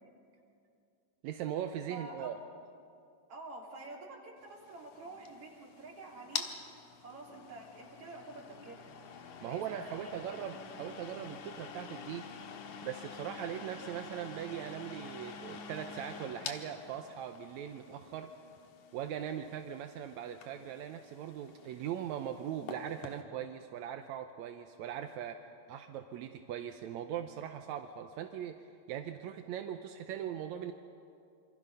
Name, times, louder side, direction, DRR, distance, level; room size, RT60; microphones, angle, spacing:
voice 1, 1.2-2.4 9.4-12.3 12.8-18.3 18.9-30.7, right 9 dB, 80° right, 6 dB, 2.1 m, -40 dB
voice 2, 1.9-2.3 3.3-6.5 7.0-8.8 9.4-10.3, right 2 dB, 50° right, -2 dB, 4.1 m, -48 dB
sound 1, 4.5-23.2, left 6 dB, 90° left, 2.8 m, -47 dB
27.5 x 25.0 x 5.6 m, 2.5 s
omnidirectional pair, 3.4 m